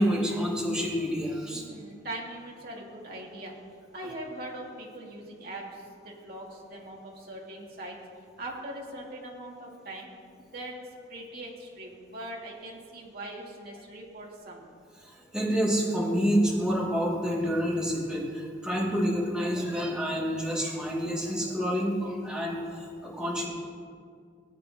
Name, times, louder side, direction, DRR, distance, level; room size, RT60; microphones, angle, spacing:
voice 1, 0.0-1.6 15.0-23.5, equal, 5° right, -5 dB, 2.1 m, -28 dB
voice 2, 1.4-3.6 3.9-8.0 8.4-10.1 10.4-10.8 11.1-14.6, right 1 dB, 55° right, -3 dB, 2.1 m, -41 dB
19.5 x 8.8 x 2.8 m, 2.2 s
head